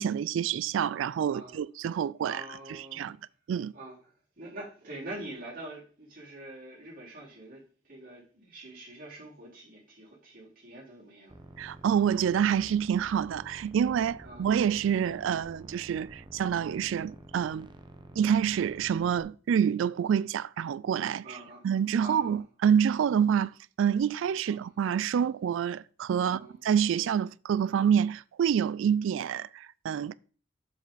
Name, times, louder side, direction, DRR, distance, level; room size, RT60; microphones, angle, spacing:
voice 1, 0.0-2.4 2.7-3.2 3.5-3.7 11.6-17.7 18.2-21.4 21.6-30.1, right 8 dB, 70° right, 0.3 m, -27 dB
voice 2, 1.3-1.6 2.2-3.1 3.7-11.3 11.7-11.8 14.2-14.5 17.0-17.2 18.0-18.2 21.0-22.4 24.4-24.6 26.2-26.6, right 1 dB, 50° right, 4.2 m, -45 dB
sound 1, 11.3-19.2, right 1 dB, 25° right, 1.0 m, -50 dB
7.7 x 7.2 x 3.9 m
head